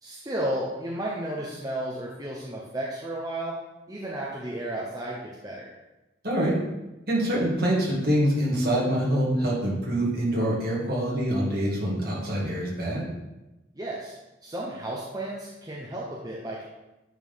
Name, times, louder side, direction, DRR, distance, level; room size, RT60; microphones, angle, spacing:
voice 1, 0.0-3.5 3.9-5.7 13.7-14.1 14.4-16.6, right 1 dB, 20° right, -4 dB, 0.8 m, -33 dB
voice 2, 6.2-6.5 7.1-13.0, right 1 dB, 50° right, -4 dB, 2.1 m, -25 dB
9.0 x 4.4 x 3.6 m, 1.0 s
head